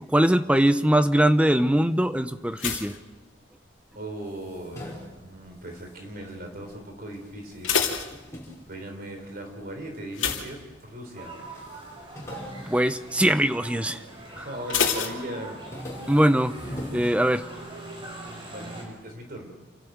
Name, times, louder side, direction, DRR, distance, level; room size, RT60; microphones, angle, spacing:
voice 1, 0.1-2.9 12.7-14.0 14.4-14.5 16.1-16.5 16.9-17.4, right 1 dB, 5° right, 11 dB, 0.7 m, -21 dB
sound 1, 2.5-4.0 4.3-4.8 5.4-5.8 6.1-6.2 6.6-6.7 7.3-8.8 10.1-11.3 11.6-11.9 12.3-12.4 14.7-15.9 16.2-16.3, left 7 dB, 80° left, 2.7 m, -29 dB
voice 2, 3.9-7.7 8.7-11.3 14.3-15.6 18.5-19.5, right 1 dB, 50° right, 3 dB, 3.7 m, -38 dB
sound 2, 4.1-6.8 7.1-9.6 10.2-10.9 11.2-11.3 11.5-14.1 14.5-15.0 15.3-17.9, left 1 dB, 15° left, 5.4 m, -42 dB
sound 3, 11.1-18.8, right 2 dB, 25° right, 5.1 m, -42 dB
29.0 x 12.0 x 8.0 m, 1.2 s
head